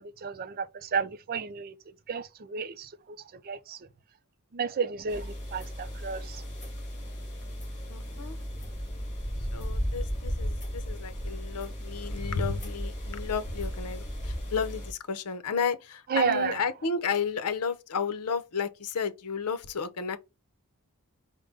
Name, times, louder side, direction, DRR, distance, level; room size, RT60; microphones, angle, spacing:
voice 1, 0.0-1.7 2.1-3.9 4.5-6.4 16.1-16.6, right 6 dB, 45° right, 0.4 m, -32 dB
Speech / Wind, 4.9-9.8, equal, 15° left, 0.9 m, -55 dB
sound 1, 5.1-14.9, equal, 35° left, 2.1 m, -35 dB
voice 2, 7.9-8.4 9.5-20.2, left 5 dB, 85° left, 0.7 m, -32 dB
5.1 x 2.1 x 3.4 m
head